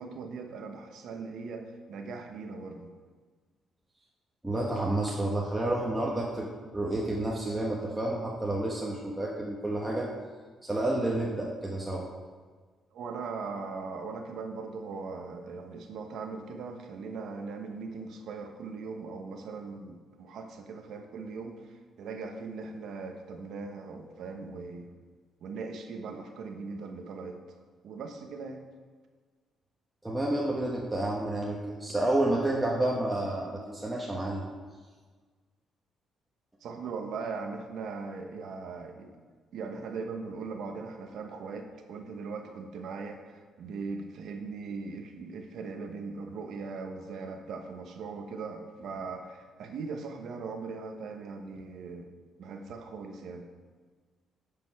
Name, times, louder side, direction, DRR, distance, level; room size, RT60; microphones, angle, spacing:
voice 1, 0.0-2.9 12.9-24.9 25.4-27.6 27.8-28.6 36.6-39.1 39.5-52.1 52.4-53.5, right 4 dB, 75° right, 5 dB, 0.9 m, -39 dB
voice 2, 4.4-10.1 10.6-12.1 30.0-34.5, right 1 dB, 10° right, -4 dB, 1.1 m, -30 dB
9.4 x 5.2 x 4.7 m, 1.5 s
cardioid pair, 90°, 0 cm